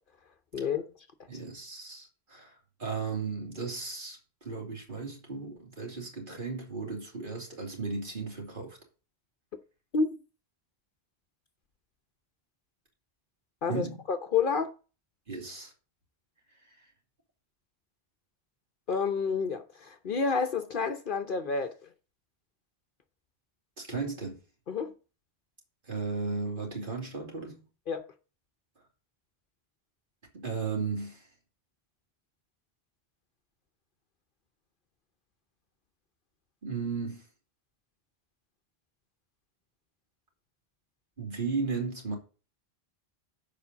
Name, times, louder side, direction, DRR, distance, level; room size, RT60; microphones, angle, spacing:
voice 1, 0.5-0.8 9.9-10.1 13.6-14.7 18.9-21.7 24.7-24.9 27.9-28.0, left 5 dB, 55° left, 0.9 m, -29 dB
voice 2, 1.3-8.8 13.7-14.0 15.3-15.7 16.6-16.9 23.8-24.4 25.8-27.6 30.3-31.3 36.6-37.3 41.2-42.2, right 4 dB, 55° right, 3.0 m, -35 dB
7.1 x 5.2 x 6.7 m
omnidirectional pair, 1.1 m